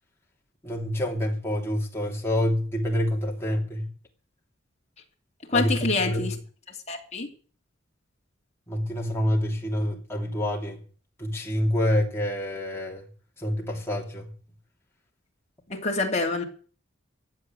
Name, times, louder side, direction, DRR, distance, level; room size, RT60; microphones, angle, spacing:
voice 1, 0.6-3.9 5.5-6.3 8.7-10.8 11.2-13.0 13.4-14.3, equal, 15° left, 2.9 m, -27 dB
voice 2, 5.5-6.3 6.9-7.3 15.7-16.4, left 3 dB, 35° left, 2.8 m, -26 dB
15.0 x 8.3 x 7.8 m
head